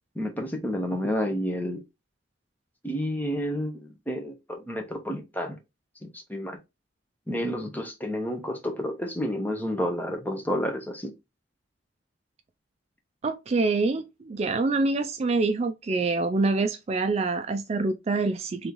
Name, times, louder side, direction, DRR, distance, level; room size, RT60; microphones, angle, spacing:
voice 1, 0.1-1.8 2.8-5.6 6.0-6.6 7.3-11.1, equal, 10° left, 0.9 m, -30 dB
voice 2, 13.2-18.7, right 3 dB, 35° right, 0.3 m, -26 dB
3.5 x 3.1 x 3.9 m
head